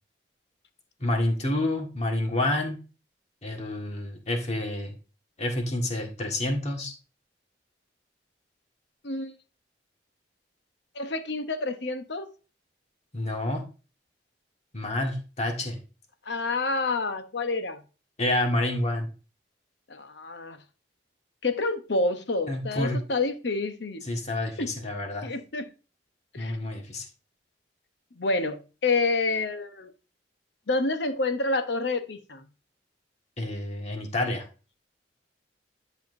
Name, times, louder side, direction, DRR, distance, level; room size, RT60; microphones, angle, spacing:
voice 1, 1.0-2.8 3.4-4.9 5.4-6.9 13.1-13.6 14.7-15.8 18.2-19.1 22.5-23.0 24.1-25.3 26.4-27.0 33.4-34.5, left 1 dB, 40° left, 1.7 m, -28 dB
voice 2, 10.9-12.3 16.3-17.8 19.9-20.6 21.4-24.0 24.6-24.7 25.2-25.7 26.3-26.6 28.2-29.9 30.7-32.4, left 3 dB, 70° left, 0.9 m, -28 dB
10.5 x 5.7 x 2.6 m
head